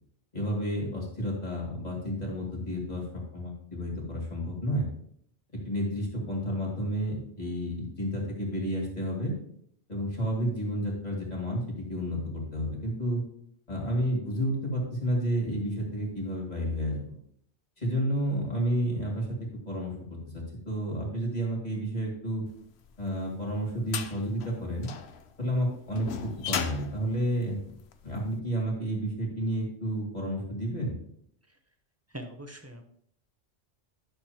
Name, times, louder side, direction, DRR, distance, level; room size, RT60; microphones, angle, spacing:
voice 1, 0.3-3.0 3.3-4.9 5.6-9.3 9.9-13.2 13.7-17.0 17.8-19.4 19.7-22.4 23.0-24.9 25.4-27.6 28.0-31.0, equal, 35° left, -2 dB, 2.6 m, -31 dB
sound 1, 22.9-28.2, left 7 dB, 70° left, 0.9 m, -37 dB
voice 2, 32.1-32.8, right 1 dB, 15° right, 4 dB, 0.8 m, -41 dB
11.5 x 6.5 x 2.9 m, 0.67 s
omnidirectional pair, 1.2 m